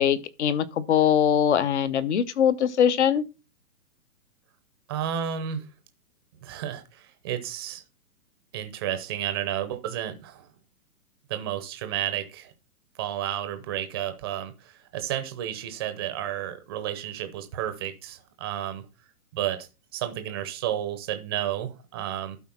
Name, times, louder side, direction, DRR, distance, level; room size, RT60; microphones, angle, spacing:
voice 1, 0.0-3.2, left 9 dB, 50° left, 1.0 m, -22 dB
voice 2, 4.9-5.7 6.4-7.8 8.5-10.5 11.3-12.5 13.0-18.9 19.3-19.7 19.9-22.4, right 11 dB, 15° right, 0.7 m, -32 dB
12.0 x 4.2 x 5.7 m
hypercardioid pair, 160°, 46 cm